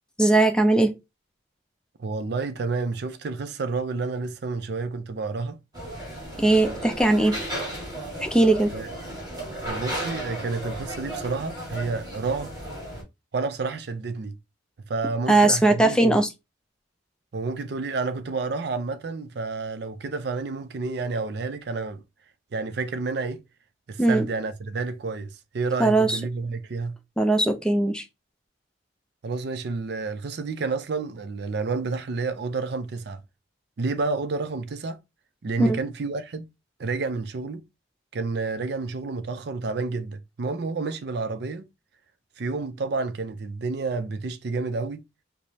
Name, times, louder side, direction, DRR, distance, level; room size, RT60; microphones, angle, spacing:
voice 1, 0.2-1.0 6.4-7.4 8.2-8.7 15.3-16.3 24.0-24.3 25.8-26.2 27.2-28.0 35.6-35.8, right 2 dB, 5° left, 0.4 m, -19 dB
voice 2, 2.0-5.6 8.7-8.9 9.6-12.5 13.3-14.4 14.9-16.2 17.3-22.0 22.5-23.4 23.9-25.3 25.5-27.0 29.2-33.2 33.8-35.0 35.4-36.5 36.8-37.6 38.1-41.7 42.4-45.0, right 3 dB, 55° right, 0.4 m, -30 dB
sound 1, 5.7-13.0, right 1 dB, 20° right, 1.8 m, -34 dB
4.8 x 2.0 x 2.7 m
head